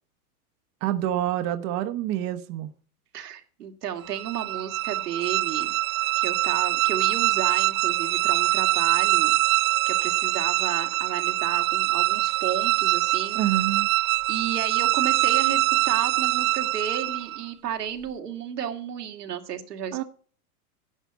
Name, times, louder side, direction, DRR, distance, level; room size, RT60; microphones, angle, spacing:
voice 1, 0.8-2.7 13.3-13.9 19.9-20.0, right 13 dB, 35° right, 1.0 m, -27 dB
voice 2, 3.1-5.7 6.2-9.3 9.9-13.4 14.3-20.0, right 8 dB, 85° right, 2.3 m, -32 dB
sound 1, 4.1-17.4, right 18 dB, 65° right, 0.6 m, -24 dB
11.0 x 7.8 x 8.1 m
hypercardioid pair, 125°, 46 cm